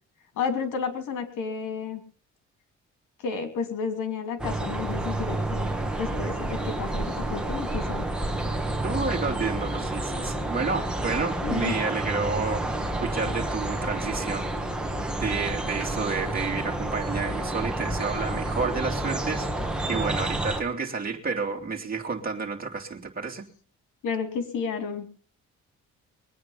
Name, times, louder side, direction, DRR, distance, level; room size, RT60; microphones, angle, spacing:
voice 1, 0.4-2.0 3.2-5.7 6.0-8.1 11.4-11.7 24.0-25.1, left 5 dB, 85° left, 7 dB, 3.0 m, -31 dB
sound 1, 4.4-20.6, right 1 dB, 5° right, 2.4 m, -29 dB
voice 2, 8.8-12.7 13.0-14.5 15.2-19.5 19.9-23.5, right 4 dB, 30° right, 1 dB, 2.9 m, -30 dB
22.0 x 9.4 x 5.7 m, 0.41 s
cardioid pair, 90°, 30 cm